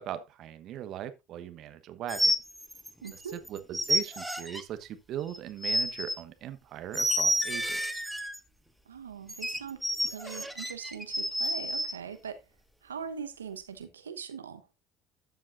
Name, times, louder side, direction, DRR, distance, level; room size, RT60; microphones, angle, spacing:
voice 1, 0.0-2.3 3.1-8.0, right 11 dB, 55° right, 1.1 m, -39 dB
sound 1, 2.1-3.2 3.5-4.6 5.3-6.2 6.9-8.4 9.3-12.0, equal, ahead, 1.5 m, -29 dB
voice 2, 3.0-3.4 8.9-12.4 12.8-14.7, right 7 dB, 90° right, 1.0 m, -41 dB
13.0 x 7.5 x 2.5 m
hypercardioid pair, 70°, 0 cm